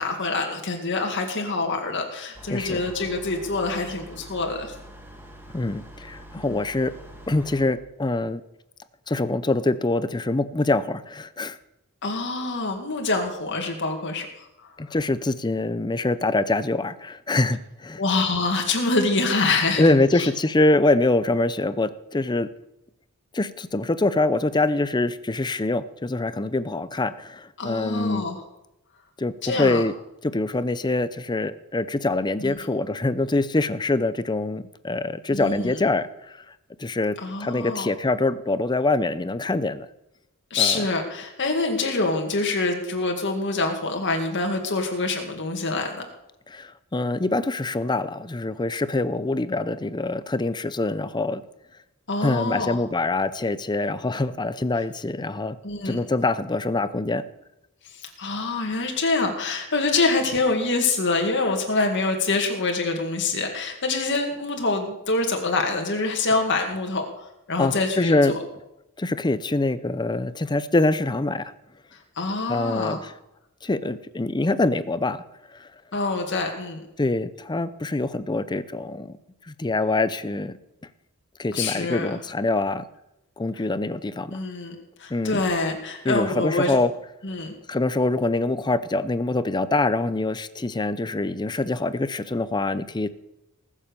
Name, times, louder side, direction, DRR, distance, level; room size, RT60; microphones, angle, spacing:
voice 1, 0.0-4.7 6.5-6.6 12.0-14.7 18.0-20.3 27.6-28.4 29.4-29.8 32.4-32.6 35.3-35.8 37.2-37.9 40.5-46.1 52.1-52.8 55.6-56.0 57.8-67.1 67.5-68.4 72.2-73.0 75.9-76.8 81.5-82.2 84.3-84.7 85.0-86.8 87.2-87.5, left 3 dB, 55° left, 3 dB, 2.1 m, -25 dB
sound 1, 2.3-7.7, right 1 dB, 10° right, 2.0 m, -44 dB
voice 2, 2.5-2.8 5.5-6.9 7.3-8.4 9.1-11.6 14.8-18.0 19.8-22.5 23.3-28.2 29.2-29.9 30.2-36.4 36.8-39.9 40.6-40.8 46.5-51.4 52.2-55.6 55.8-57.2 67.6-68.4 69.0-71.5 72.5-73.1 73.6-75.2 75.6-75.7 77.0-79.2 79.6-80.5 81.4-82.8 83.4-84.4 85.1-85.4 86.1-86.9 87.7-93.1, left 2 dB, 20° left, 14 dB, 0.6 m, -24 dB
20.0 x 7.4 x 6.8 m, 0.88 s
head